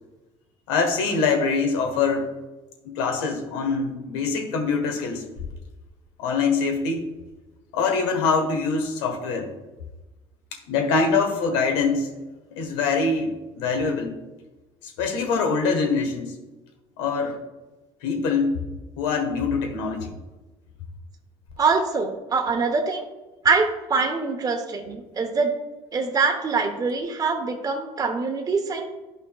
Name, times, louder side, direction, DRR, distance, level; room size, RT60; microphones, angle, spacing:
voice 1, 0.7-2.3 2.8-5.2 6.2-7.0 7.7-9.5 10.7-12.1 12.5-14.2 14.8-16.4 17.0-17.4 18.0-18.6 19.0-20.2, left 4 dB, 90° left, 4 dB, 1.4 m, -24 dB
voice 2, 21.6-23.0 23.4-25.6 25.9-28.9, right 4 dB, 30° right, 3 dB, 0.9 m, -24 dB
11.0 x 5.5 x 2.3 m, 1.1 s
supercardioid pair, 100°, 13 cm